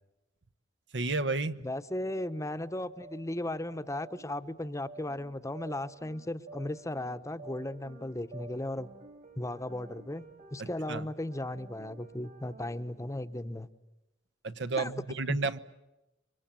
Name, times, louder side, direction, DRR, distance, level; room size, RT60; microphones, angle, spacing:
voice 1, 0.9-1.6 10.6-11.0 14.4-15.6, right 3 dB, 70° right, 12 dB, 1.1 m, -32 dB
voice 2, 1.6-8.9 9.4-10.2 10.5-13.7 14.8-14.9 15.3-15.4, left 1 dB, 15° left, 11 dB, 1.0 m, -36 dB
sound 1, 1.7-12.7, right 2 dB, 50° right, 3.1 m, -52 dB
29.5 x 24.5 x 7.6 m, 0.96 s
head